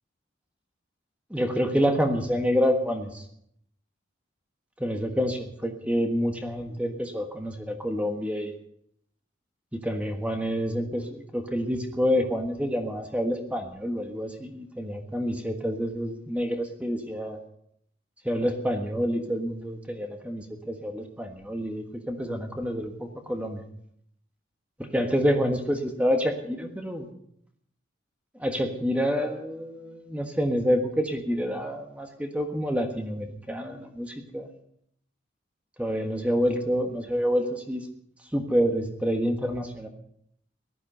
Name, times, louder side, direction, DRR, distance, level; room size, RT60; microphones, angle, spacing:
voice 1, 1.3-3.2 4.8-8.5 9.7-17.4 18.2-23.6 24.8-27.1 28.4-34.5 35.8-37.8 38.3-39.9, equal, 5° right, 4 dB, 1.5 m, -28 dB
18.0 x 12.0 x 5.5 m, 0.71 s
head